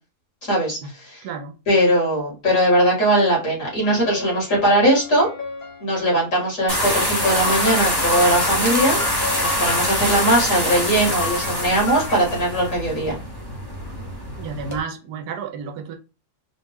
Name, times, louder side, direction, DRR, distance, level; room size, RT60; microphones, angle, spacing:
voice 1, 0.5-1.2 1.7-5.3 5.8-9.0 9.4-13.1, right 1 dB, 55° left, 2.2 m, -20 dB
voice 2, 1.2-1.5 14.4-16.0, right 5 dB, 80° right, 1.2 m, -31 dB
sound 1, 3.7-5.8 7.2-9.9 11.2-12.7, left 4 dB, 35° left, 1.1 m, -33 dB
sound 2, 6.7-14.8, equal, 20° left, 0.8 m, -24 dB
4.3 x 2.1 x 3.5 m
omnidirectional pair, 1.7 m